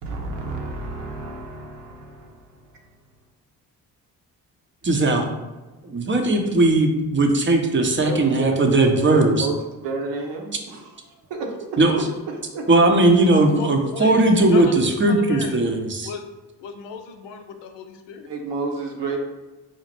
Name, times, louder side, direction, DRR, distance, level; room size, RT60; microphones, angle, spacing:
voice 1, 0.0-2.6 8.0-9.6 9.8-10.9 11.3-11.5 12.3-12.6 18.3-19.2, right 3 dB, 65° right, 1 dB, 0.8 m, -30 dB
voice 2, 4.8-5.3 5.8-9.5 11.8-12.0 12.7-16.1, right 2 dB, 25° right, 3 dB, 0.6 m, -18 dB
voice 3, 13.5-15.6 16.0-16.3 16.6-18.3, left 4 dB, 70° left, 5 dB, 0.6 m, -35 dB
4.0 x 2.1 x 3.1 m, 1.2 s
hypercardioid pair, 45°, 46 cm